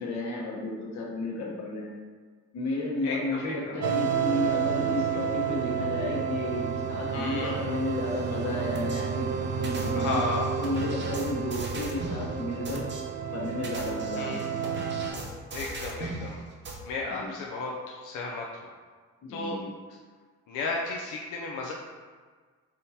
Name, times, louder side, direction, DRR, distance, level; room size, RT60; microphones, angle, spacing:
voice 1, 0.0-1.9 2.5-9.3 9.6-10.2 10.6-12.8 13.3-14.6 17.1-17.3 19.2-19.7, left 2 dB, 65° left, -3 dB, 1.1 m, -32 dB
voice 2, 3.0-3.8 7.1-7.6 9.9-10.5 14.2-14.4 15.5-16.4 16.8-18.7 19.3-19.6 20.5-21.7, left 3 dB, 85° left, -1 dB, 0.5 m, -33 dB
sound 1, 3.8-15.1, right 7 dB, 75° right, 0.5 m, -30 dB
sound 2, 8.7-9.0 9.6-12.2 12.6-13.0 13.5-16.2 16.6-16.7, right 3 dB, 40° right, 0.8 m, -38 dB
3.5 x 2.8 x 4.1 m, 1.5 s
cardioid pair, 90°, 30 cm